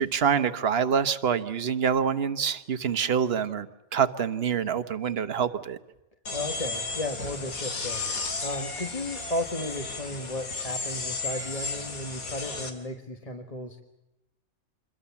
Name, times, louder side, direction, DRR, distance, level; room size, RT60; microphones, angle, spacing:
voice 1, 0.0-5.8, right 7 dB, 50° right, 10 dB, 1.3 m, -26 dB
sound 1, 6.2-12.7, left 3 dB, 85° left, 3.0 m, -34 dB
voice 2, 6.3-13.8, left 1 dB, 25° left, 3 dB, 1.5 m, -34 dB
27.0 x 22.0 x 7.1 m, 0.94 s
omnidirectional pair, 1.5 m